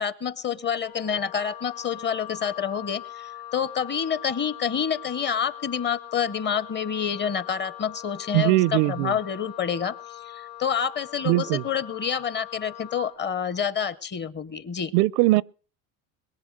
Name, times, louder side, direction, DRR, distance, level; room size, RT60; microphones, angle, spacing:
voice 1, 0.0-14.9, left 7 dB, 25° left, 0.8 m, -28 dB
Wind instrument woodwind instrument, 0.7-13.2, left 14 dB, 65° left, 1.8 m, -42 dB
voice 2, 8.3-9.1 11.3-11.6 14.9-15.4, right 20 dB, 75° right, 0.6 m, -20 dB
22.0 x 8.0 x 6.5 m
cardioid pair, 125°, 43 cm